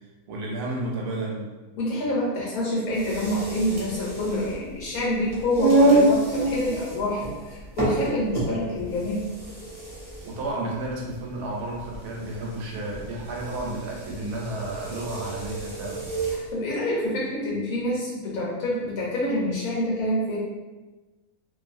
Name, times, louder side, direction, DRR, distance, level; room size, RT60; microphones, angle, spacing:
voice 1, 0.3-1.5 10.2-16.0, right 2 dB, 85° right, -2 dB, 1.2 m, -32 dB
voice 2, 1.8-9.3 16.3-20.4, left 1 dB, 70° left, -5 dB, 1.3 m, -27 dB
sound 1, 2.9-16.5, right 2 dB, 65° right, 0.3 m, -27 dB
2.6 x 2.5 x 2.5 m, 1.2 s
omnidirectional pair, 1.6 m